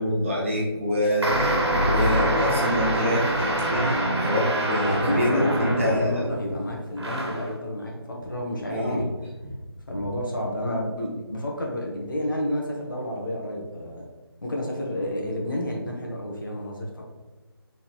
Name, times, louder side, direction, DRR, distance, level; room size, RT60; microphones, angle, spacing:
voice 1, 0.0-6.3 8.7-9.1, equal, 30° right, -5 dB, 1.2 m, -26 dB
sound 1, 1.2-6.3 7.0-7.5, right 1 dB, 85° right, 1.4 m, -25 dB
voice 2, 4.8-9.1 9.9-14.0 14.4-17.0, left 1 dB, 55° left, -1 dB, 1.1 m, -30 dB
4.3 x 3.8 x 3.0 m, 1.2 s
figure-of-eight pair, 175°, 13 cm